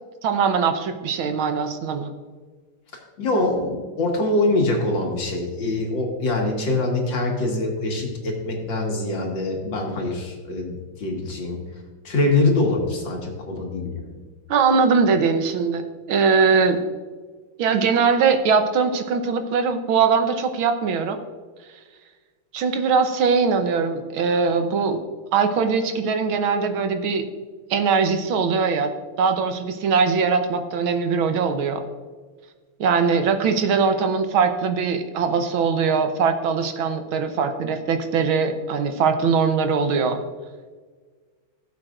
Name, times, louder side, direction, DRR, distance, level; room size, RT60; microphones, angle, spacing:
voice 1, 0.2-2.1 14.5-15.8 16.1-16.8 17.6-21.2 22.5-25.0 25.3-27.2 27.7-28.9 29.2-31.8 32.8-40.2, right 5 dB, 80° right, 7 dB, 1.7 m, -21 dB
voice 2, 3.2-14.0, left 2 dB, 65° left, -1 dB, 2.5 m, -24 dB
16.5 x 7.8 x 2.5 m, 1.4 s
omnidirectional pair, 2.3 m